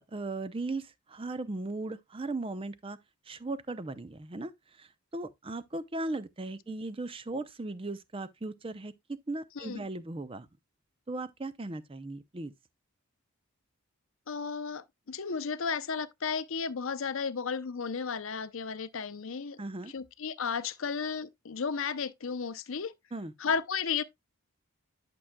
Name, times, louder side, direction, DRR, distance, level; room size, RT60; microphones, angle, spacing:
voice 1, 0.1-3.0 3.3-4.5 4.8-4.9 5.1-10.5 11.1-12.5 19.6-19.9 23.1-23.3, right 2 dB, 25° right, 0.5 m, -37 dB
voice 2, 14.3-19.6 19.9-22.9 23.4-24.0, left 5 dB, 65° left, 0.6 m, -33 dB
11.0 x 6.1 x 2.2 m
head